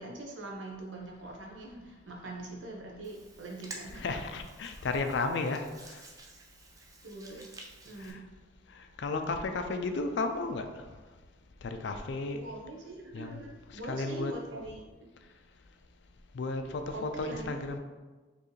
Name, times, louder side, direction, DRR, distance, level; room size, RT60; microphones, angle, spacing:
voice 1, 0.0-4.3 7.0-7.4 7.8-8.2 12.4-15.1 16.9-17.6, right 2 dB, 80° right, -1 dB, 0.9 m, -43 dB
Hands, 3.0-8.1, right 2 dB, 20° right, 0.4 m, -51 dB
voice 2, 3.9-5.6 8.0-8.2 9.0-10.7 11.6-12.4 13.1-13.4 13.9-14.3 16.3-17.8, left 3 dB, 65° left, 7 dB, 0.4 m, -33 dB
4.5 x 3.2 x 3.1 m, 1.3 s
head